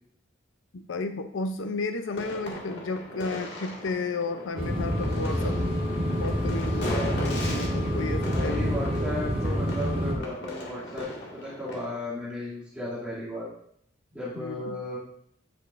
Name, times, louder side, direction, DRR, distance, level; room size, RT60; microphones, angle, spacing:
voice 1, 0.7-5.6 6.2-8.7 14.4-14.8, left 3 dB, 70° left, 8 dB, 0.5 m, -33 dB
sound 1, 2.1-12.0, equal, 55° left, 1.9 m, -38 dB
sound 2, 4.6-10.1, equal, 30° right, 1.6 m, -27 dB
voice 2, 8.2-13.5 14.1-15.0, left 1 dB, 5° right, -10 dB, 2.4 m, -35 dB
9.6 x 8.0 x 2.5 m, 0.68 s
head